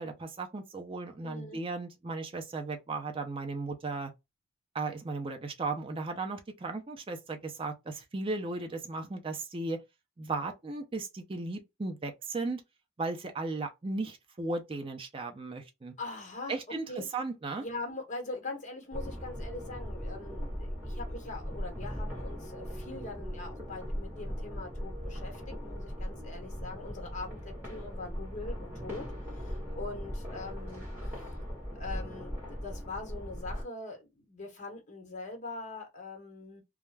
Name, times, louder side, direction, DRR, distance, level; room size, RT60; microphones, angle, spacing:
voice 1, 0.0-4.1 4.7-9.8 10.2-12.6 13.0-16.0 16.5-17.6 29.7-29.8, right 3 dB, 25° right, 0.4 m, -36 dB
voice 2, 1.2-1.6 16.0-16.6 16.9-17.1 17.6-30.9 31.7-36.6, left 3 dB, 35° left, 0.9 m, -42 dB
sound 1, 18.9-33.6, equal, 10° right, 1.3 m, -39 dB
2.3 x 2.1 x 3.2 m
head